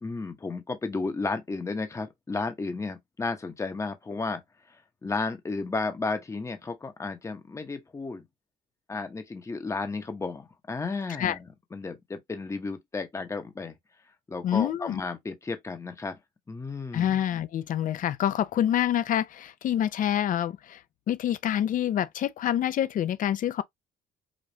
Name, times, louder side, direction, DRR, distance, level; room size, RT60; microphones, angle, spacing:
voice 1, 0.0-4.4 5.0-8.2 8.9-13.7 14.3-16.2 16.5-17.1, left 3 dB, 15° left, 0.9 m, -33 dB
voice 2, 14.4-15.0 16.9-20.8 21.1-23.6, left 10 dB, 50° left, 0.6 m, -27 dB
5.1 x 2.5 x 2.7 m
cardioid pair, 110°, 17 cm